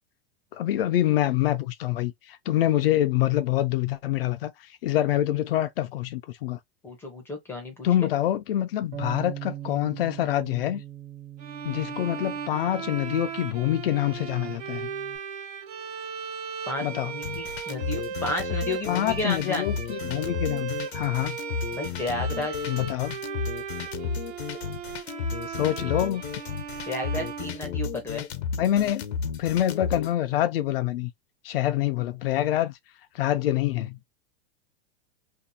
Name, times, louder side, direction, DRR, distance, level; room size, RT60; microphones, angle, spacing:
voice 1, 0.5-4.5 4.8-6.6 7.8-10.8 11.6-14.9 16.8-17.1 18.9-21.4 22.7-23.2 25.5-26.2 28.5-31.1 31.4-32.7 33.1-34.0, left 13 dB, 65° left, 0.5 m, -26 dB
voice 2, 6.8-7.7 8.0-8.1 16.7-19.8 21.7-22.5 26.9-28.3, left 2 dB, 5° left, 0.6 m, -32 dB
Bass guitar, 8.9-15.2, right 12 dB, 55° right, 1.2 m, -41 dB
sound 1, 11.4-28.2, right 7 dB, 40° right, 0.6 m, -37 dB
sound 2, 17.2-30.1, left 6 dB, 80° left, 0.9 m, -33 dB
2.7 x 2.3 x 4.1 m
supercardioid pair, 170°, 31 cm